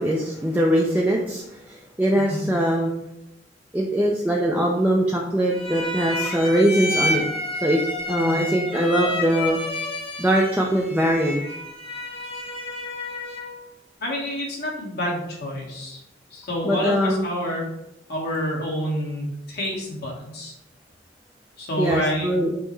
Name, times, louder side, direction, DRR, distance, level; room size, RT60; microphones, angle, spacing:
voice 1, 0.0-2.9 3.7-7.3 7.6-7.8 8.1-9.6 10.2-11.4 16.6-17.3 21.8-22.5, equal, 10° right, -2 dB, 0.4 m, -22 dB
voice 2, 2.1-2.4 8.2-8.5 14.0-16.0 16.3-17.6 18.1-20.5 21.6-22.3, equal, 60° left, -3 dB, 1.4 m, -28 dB
sound 1, 5.5-13.6, left 1 dB, 30° left, 0.9 m, -30 dB
5.4 x 2.1 x 4.5 m, 0.86 s
head